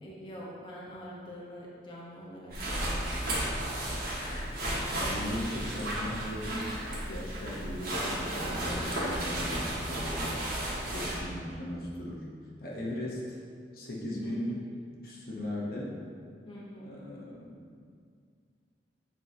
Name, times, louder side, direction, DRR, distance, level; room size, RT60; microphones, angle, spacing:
voice 1, 0.0-3.6 14.1-14.6 16.5-17.0, equal, 25° left, -6 dB, 0.9 m, -45 dB
sound 1, 2.5-11.2, right 1 dB, 55° right, 1.3 m, -33 dB
voice 2, 4.9-10.4 10.9-12.2 12.6-13.4 13.7-14.6 15.0-16.0 16.8-17.6, left 1 dB, 55° left, -4 dB, 0.9 m, -38 dB
7.6 x 4.7 x 2.7 m, 2.1 s
head